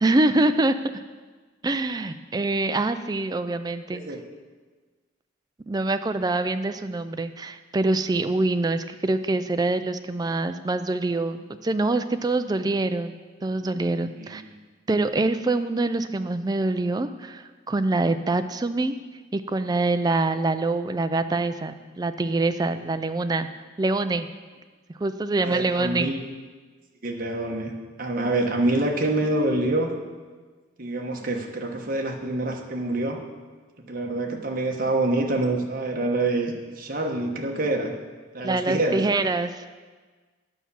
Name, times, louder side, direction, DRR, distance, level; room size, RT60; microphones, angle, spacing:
voice 1, 0.0-0.8 1.6-4.0 5.7-14.4 14.9-19.0 19.3-23.5 23.8-24.3 25.0-26.1 38.4-39.7, right 2 dB, 20° right, 10 dB, 0.4 m, -25 dB
voice 2, 25.4-26.2 27.0-27.7 28.0-29.9 30.8-33.2 33.9-37.9 38.3-39.0, right 2 dB, 45° right, 1 dB, 1.2 m, -26 dB
9.4 x 6.0 x 7.0 m, 1.4 s
head